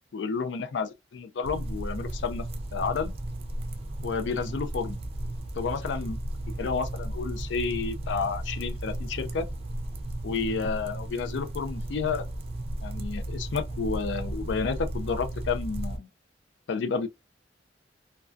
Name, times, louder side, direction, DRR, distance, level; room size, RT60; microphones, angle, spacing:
voice 1, 0.1-2.4 2.7-3.1 4.0-5.0 5.6-6.2 6.6-9.5 10.2-12.3 12.8-16.1 16.7-17.1, left 5 dB, 80° left, 0.4 m, -31 dB
sound 1, 1.4-16.0, right 1 dB, 35° right, 0.4 m, -34 dB
2.2 x 2.2 x 2.5 m
head